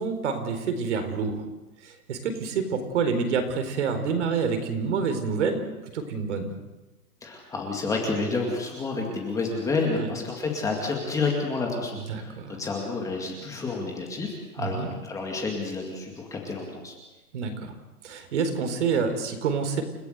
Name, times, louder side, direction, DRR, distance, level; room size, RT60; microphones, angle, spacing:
voice 1, 0.0-1.4 1.8-5.6 5.9-6.5 9.9-10.1 12.1-12.6 14.6-14.9 17.3-17.7 18.0-19.8, right 5 dB, 50° right, 7 dB, 4.3 m, -27 dB
voice 2, 7.2-16.9, left 3 dB, 5° left, 0 dB, 2.3 m, -30 dB
30.0 x 17.0 x 8.1 m, 1.1 s
hypercardioid pair, 165°, 45 cm